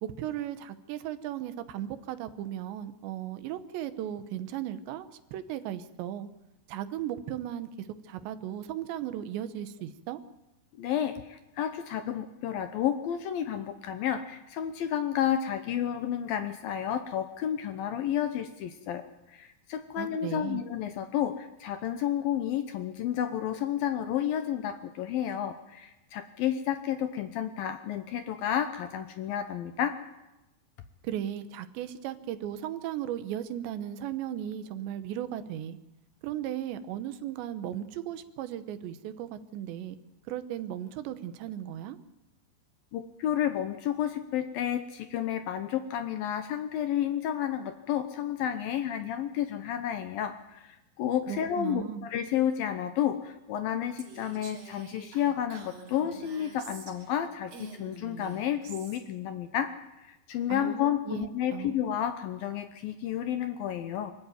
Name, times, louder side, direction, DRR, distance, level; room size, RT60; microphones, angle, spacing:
voice 1, 0.0-6.3 6.7-10.2 20.0-20.6 31.0-35.8 36.2-40.0 40.3-42.0 51.3-52.1 60.5-61.8, right 11 dB, 80° right, 11 dB, 3.3 m, -36 dB
voice 2, 10.8-19.0 19.3-30.0 42.9-59.7 60.0-64.1, left 10 dB, 75° left, 8 dB, 2.3 m, -31 dB
Female speech woman speaking, 54.0-57.2 57.5-59.0, right 3 dB, 55° right, 4.9 m, -47 dB
24.5 x 14.0 x 9.2 m, 0.96 s
omnidirectional pair, 5.1 m